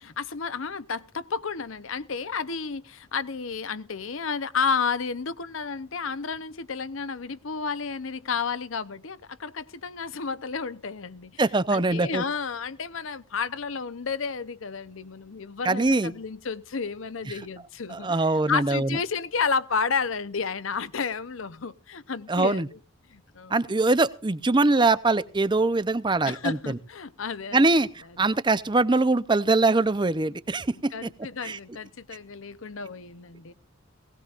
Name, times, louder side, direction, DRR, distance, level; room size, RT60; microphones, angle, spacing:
voice 1, 0.0-11.4 11.7-18.2 18.5-22.7 23.1-23.5 26.2-27.8 30.9-33.5, left 5 dB, 75° left, 0.8 m, -31 dB
voice 2, 11.4-12.2 15.6-16.1 17.3-17.4 17.9-18.9 22.3-22.7 23.5-26.8 27.5-31.1 31.4-31.6, right 3 dB, 20° right, 0.6 m, -23 dB
19.0 x 17.5 x 2.5 m
head